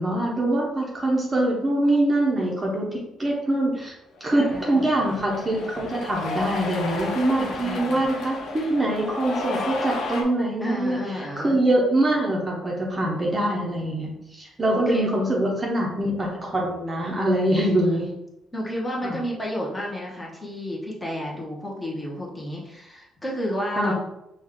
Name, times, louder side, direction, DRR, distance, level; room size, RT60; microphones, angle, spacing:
voice 1, 0.0-3.9 4.2-18.1 19.0-19.2 23.8-23.9, right 1 dB, 20° right, -2 dB, 0.8 m, -24 dB
Cheering, 4.2-10.2, left 3 dB, 65° left, 0.8 m, -33 dB
voice 2, 4.3-4.9 7.4-8.0 10.6-11.6 14.7-15.5 18.5-23.9, equal, 10° left, -3 dB, 1.0 m, -31 dB
5.1 x 2.3 x 3.7 m, 0.87 s
cardioid pair, 130°, 0 cm